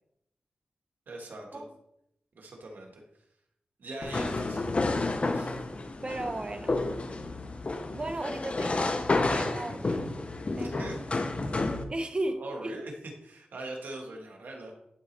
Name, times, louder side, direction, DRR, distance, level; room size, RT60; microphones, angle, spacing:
voice 1, 1.1-1.6 2.3-3.0 3.8-5.5 10.6-11.0 12.4-12.9 13.2-14.7, right 2 dB, 80° right, 0 dB, 1.6 m, -42 dB
sound 1, 4.0-11.8, left 2 dB, 40° left, 0.7 m, -30 dB
voice 2, 6.0-6.8 7.9-8.9 9.3-10.1 10.6-11.0 11.9-12.9, right 2 dB, 30° right, 6 dB, 0.8 m, -35 dB
11.5 x 4.1 x 3.3 m, 0.79 s
wide cardioid pair, 100°, 3 cm